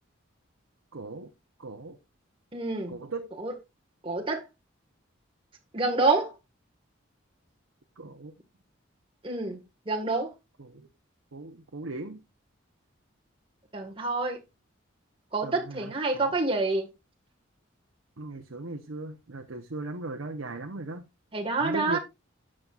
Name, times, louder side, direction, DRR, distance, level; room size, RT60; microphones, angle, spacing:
voice 1, 0.9-1.3 1.6-2.0 2.9-3.3 8.0-8.3 10.6-10.8 11.3-12.2 15.4-16.3 18.2-21.0 21.6-22.0, right 2 dB, 75° right, 0.9 m, -38 dB
voice 2, 2.5-2.9 3.4-3.5 4.0-4.4 5.7-6.3 9.2-9.6 9.9-10.3 13.7-14.4 15.3-16.9 21.3-22.0, right 3 dB, 25° right, 1.6 m, -27 dB
11.5 x 7.7 x 2.5 m
head